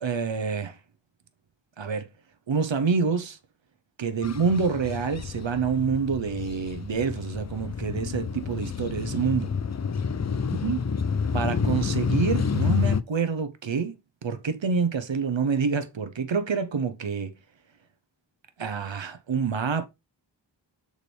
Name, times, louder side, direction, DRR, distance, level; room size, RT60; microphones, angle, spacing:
voice 1, 0.0-0.8 1.8-2.1 2.5-3.4 4.0-9.5 10.5-10.8 11.3-13.9 14.2-17.3 18.6-19.9, right 5 dB, 80° right, 0.9 m, -27 dB
sound 1, 4.2-13.0, left 6 dB, 40° left, 0.5 m, -29 dB
6.6 x 4.8 x 3.3 m
wide cardioid pair, 45°, 44 cm